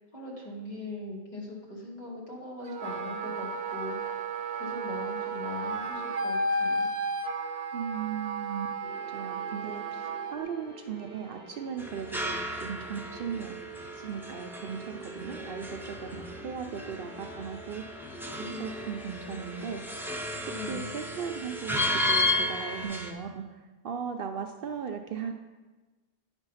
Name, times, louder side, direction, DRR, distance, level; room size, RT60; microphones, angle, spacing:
voice 1, 0.1-4.0 4.6-6.9 20.5-20.9, left 2 dB, 40° left, -4 dB, 2.0 m, -40 dB
Wind instrument woodwind instrument, 2.7-10.4, right 2 dB, 85° right, 1.0 m, -33 dB
voice 2, 7.7-8.7 9.1-13.6 14.0-17.8 18.4-19.8 20.4-25.4, right 7 dB, 65° right, 5 dB, 0.7 m, -37 dB
sound 1, 8.8-22.8, right 1 dB, 85° left, 2.4 m, -46 dB
sound 2, 11.8-23.1, left 2 dB, 5° right, 0.4 m, -34 dB
9.7 x 4.4 x 5.5 m, 1.3 s
omnidirectional pair, 1.1 m